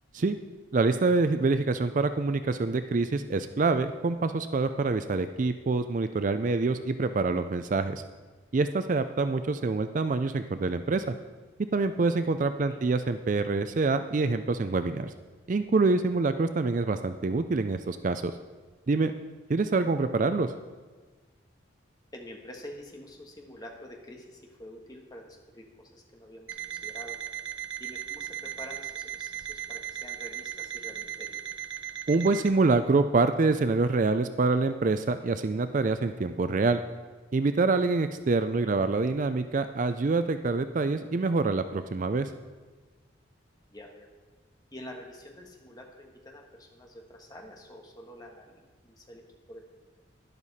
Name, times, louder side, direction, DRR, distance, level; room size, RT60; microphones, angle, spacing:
voice 1, 0.7-8.0 8.5-11.0 11.7-15.1 15.5-18.3 18.9-19.1 19.5-20.5 32.1-36.8 37.3-42.3, right 3 dB, 40° right, 10 dB, 0.4 m, -26 dB
voice 2, 22.1-27.2 27.8-31.4 38.6-38.8 43.7-44.1 44.7-49.2 49.5-50.0, left 1 dB, 20° left, 1 dB, 1.5 m, -47 dB
Alarm, 26.5-32.5, right 9 dB, 65° right, 0.8 m, -37 dB
12.0 x 10.5 x 4.2 m, 1.4 s
head